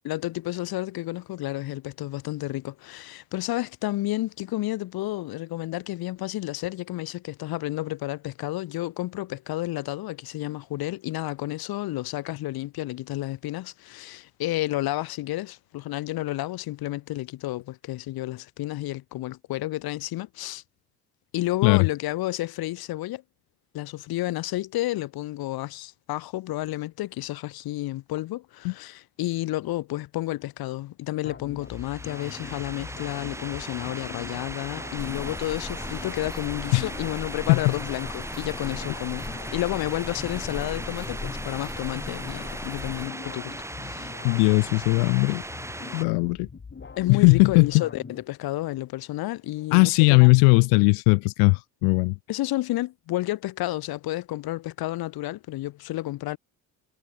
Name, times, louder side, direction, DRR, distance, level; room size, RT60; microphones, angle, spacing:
voice 1, 0.0-20.6 21.3-23.2 23.7-44.1 47.0-50.3 52.3-56.4, left 16 dB, 65° left, 1.3 m, -31 dB
sound 1, 31.2-48.2, left 5 dB, 30° left, 4.0 m, -42 dB
sound 2, 31.6-46.0, right 1 dB, 5° right, 1.9 m, -38 dB
sound 3, 35.0-43.1, left 2 dB, 10° left, 2.3 m, -39 dB
voice 2, 44.2-45.4 45.9-46.5 47.1-47.7 49.7-52.1, left 40 dB or more, 90° left, 1.0 m, -18 dB
supercardioid pair, 75°, 39 cm